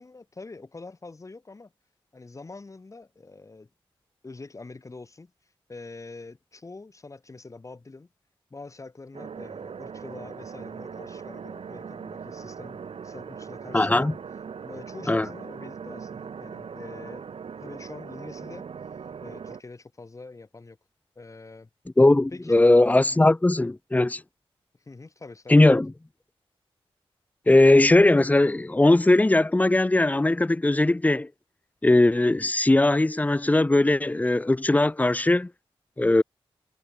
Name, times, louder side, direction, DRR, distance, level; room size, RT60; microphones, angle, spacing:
voice 1, 0.0-1.7 2.1-3.7 4.2-8.1 8.5-14.1 14.6-17.3 17.6-18.7 19.2-20.8 21.2-21.7 22.3-22.7 24.8-25.8, left 3 dB, 35° left, 7.6 m, -44 dB
sound 1, 9.1-19.6, right 6 dB, 75° right, 2.5 m, -40 dB
voice 2, 13.7-14.1 15.1-15.3 22.0-24.2 25.5-25.9 27.5-31.3 31.8-35.5 36.0-36.2, left 2 dB, 15° left, 1.0 m, -19 dB
wide cardioid pair, 120°, 10 cm